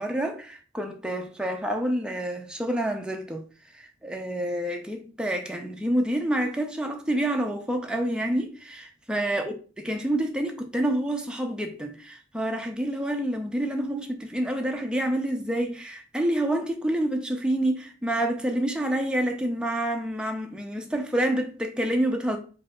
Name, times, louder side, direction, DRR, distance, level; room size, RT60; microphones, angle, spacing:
voice 1, 0.0-3.4 3.7-9.5 9.8-22.4, right 1 dB, 5° right, 0.4 m, -28 dB
4.6 x 2.7 x 2.3 m
head